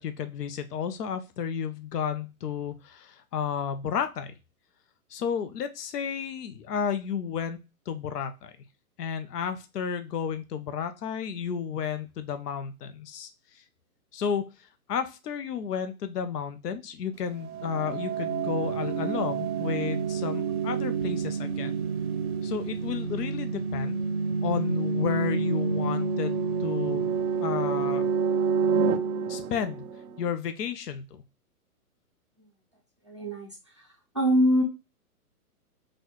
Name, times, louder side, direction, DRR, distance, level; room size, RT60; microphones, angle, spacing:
voice 1, 0.0-4.3 5.1-7.6 7.9-8.5 9.0-13.3 14.1-14.5 14.9-21.7 22.4-24.0 24.4-27.0 27.4-28.0 29.3-29.8 30.2-31.2, left 7 dB, 85° left, 9 dB, 0.7 m, -32 dB
sound 1, 17.5-30.2, right 5 dB, 70° right, 0.6 m, -28 dB
voice 2, 33.0-34.6, equal, 25° right, -2 dB, 0.3 m, -25 dB
4.1 x 2.2 x 3.0 m, 0.27 s
hypercardioid pair, 155°, 46 cm